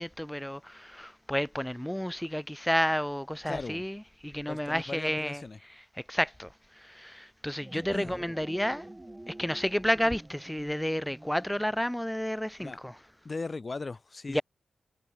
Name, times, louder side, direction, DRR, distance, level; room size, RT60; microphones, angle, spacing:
voice 1, 0.0-5.4 6.0-8.9 9.3-12.9 14.3-14.4, equal, 5° left, 0.6 m, -31 dB
voice 2, 3.5-3.8 4.5-5.6 7.7-8.2 12.6-12.8 13.2-14.4, left 3 dB, 40° left, 1.1 m, -38 dB
sound 1, 7.5-12.1, right 1 dB, 15° right, 1.0 m, -48 dB
cardioid pair, 70°, 0 cm